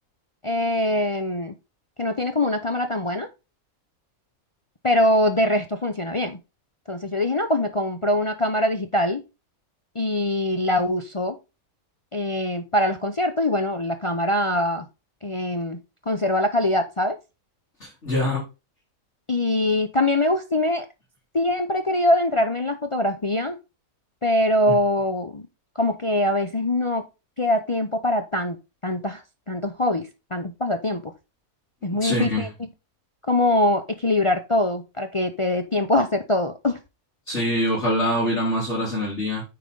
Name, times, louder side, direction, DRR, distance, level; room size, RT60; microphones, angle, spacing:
voice 1, 0.4-1.5 2.0-3.3 4.8-6.4 6.9-9.2 9.9-11.4 12.1-14.9 15.2-15.8 16.1-17.2 19.3-20.9 21.3-23.6 24.2-25.5 25.8-27.0 27.4-28.6 28.8-31.1 31.8-32.5 33.3-36.8, left 1 dB, 35° left, 0.5 m, -23 dB
voice 2, 17.8-18.4 24.7-24.8 32.0-32.5 37.3-39.4, equal, 50° left, 4.6 m, -24 dB
9.2 x 4.8 x 3.9 m
omnidirectional pair, 1.5 m